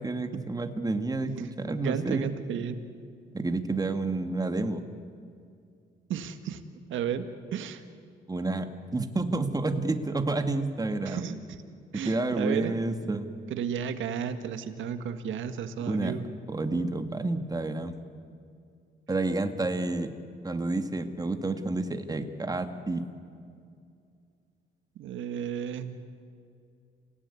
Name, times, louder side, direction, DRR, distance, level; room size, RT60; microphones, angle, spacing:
voice 1, 0.0-2.3 3.3-4.8 8.3-11.2 12.0-13.3 15.9-16.1 16.5-17.9 19.1-20.1 20.4-23.1, right 2 dB, 20° right, 7 dB, 1.9 m, -29 dB
voice 2, 1.8-2.8 6.1-6.6 6.9-7.2 7.5-7.8 11.1-11.6 11.9-12.8 13.5-16.3 25.0-26.0, right 8 dB, 80° right, 9 dB, 1.8 m, -33 dB
27.5 x 17.5 x 9.8 m, 2.3 s
cardioid pair, 90°, 20 cm